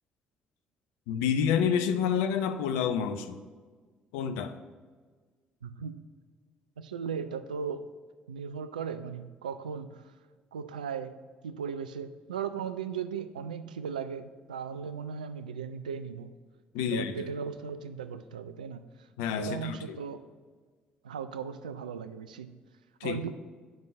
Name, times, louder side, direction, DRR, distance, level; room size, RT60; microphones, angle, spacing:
voice 1, 1.1-3.4 4.1-4.6 16.7-17.1 19.2-20.0 23.0-23.2, left 7 dB, 65° left, 9 dB, 0.5 m, -28 dB
voice 2, 5.6-6.0 6.8-7.9 8.3-10.1 10.5-11.2 11.4-16.3 16.8-19.1 19.4-20.2 21.0-22.6 23.0-23.3, right 6 dB, 80° right, 12 dB, 0.3 m, -37 dB
7.8 x 5.4 x 5.1 m, 1.5 s
figure-of-eight pair, 45°, 4 cm